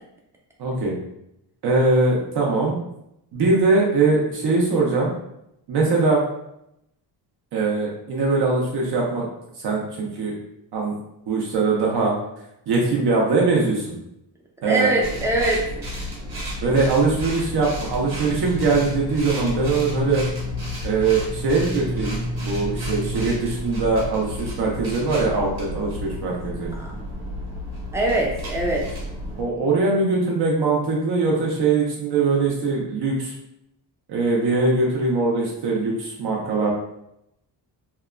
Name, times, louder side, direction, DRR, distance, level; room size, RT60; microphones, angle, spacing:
voice 1, 0.6-1.0 1.6-2.8 3.3-5.1 5.7-6.2 7.5-9.3 9.6-10.3 10.7-10.9 11.3-12.1 12.7-14.0 14.6-14.9 16.6-20.2 20.8-26.7 29.4-33.3 34.1-36.7, right 3 dB, 60° right, -2 dB, 0.6 m, -21 dB
voice 2, 14.6-15.7 26.8-26.9 27.9-28.9, right 1 dB, 5° right, -2 dB, 0.3 m, -22 dB
sound 1, 15.0-29.4, left 1 dB, 35° right, 0.9 m, -31 dB
2.9 x 2.1 x 2.3 m, 0.81 s
wide cardioid pair, 150°, 44 cm